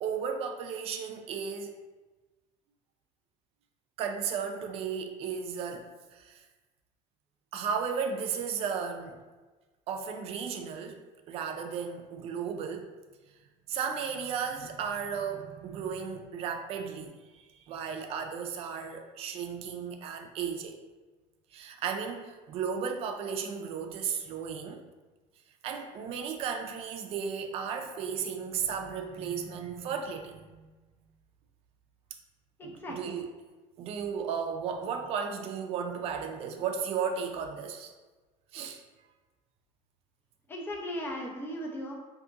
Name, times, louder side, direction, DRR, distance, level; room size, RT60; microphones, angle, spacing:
voice 1, 0.0-1.7 4.0-6.4 7.5-9.2 9.9-12.9 13.7-20.8 21.5-24.8 25.6-30.7 32.6-33.3 33.8-37.9 38.5-38.8, right 6 dB, 50° right, 4 dB, 0.4 m, -35 dB
voice 2, 32.6-33.1 40.5-41.9, equal, 15° left, 0 dB, 0.5 m, -37 dB
2.6 x 2.4 x 3.8 m, 1.2 s
cardioid pair, 155°, 13 cm